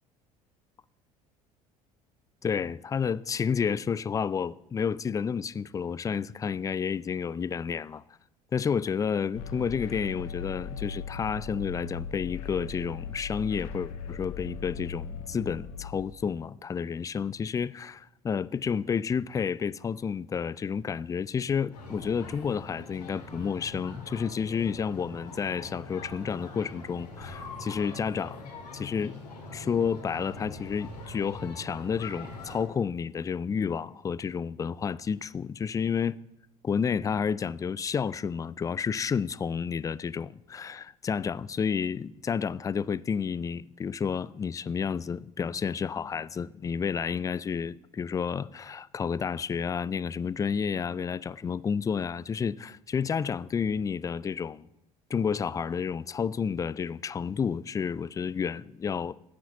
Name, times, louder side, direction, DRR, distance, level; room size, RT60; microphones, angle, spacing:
voice 1, 2.4-8.0 8.5-29.2 29.5-36.2 36.6-54.7 55.1-59.1, left 6 dB, 15° left, 0.3 m, -30 dB
sound 1, 9.3-16.0, left 5 dB, 65° left, 1.0 m, -39 dB
sound 2, 21.7-32.6, left 2 dB, 80° left, 2.1 m, -43 dB
9.7 x 8.1 x 6.0 m
figure-of-eight pair, 60°, 20 cm